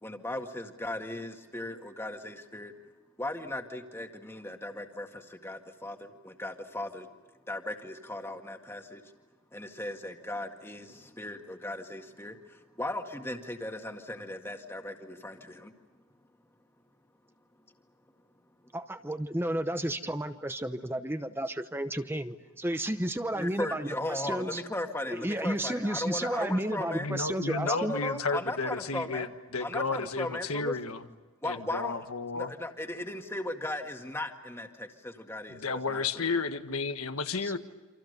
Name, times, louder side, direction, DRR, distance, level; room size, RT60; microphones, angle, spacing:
voice 1, 0.0-2.7 3.2-7.1 7.5-9.0 9.5-15.7 23.3-27.2 27.6-29.3 29.6-30.8 31.4-32.0 32.3-36.2, left 1 dB, 10° left, 4 dB, 1.9 m, -37 dB
voice 2, 18.7-24.6 25.1-28.0 37.4-37.6, right 1 dB, 10° right, 9 dB, 0.8 m, -32 dB
voice 3, 27.0-31.1 31.4-32.5 35.5-37.6, left 4 dB, 90° left, 8 dB, 1.7 m, -32 dB
28.5 x 27.0 x 6.7 m, 1.3 s
head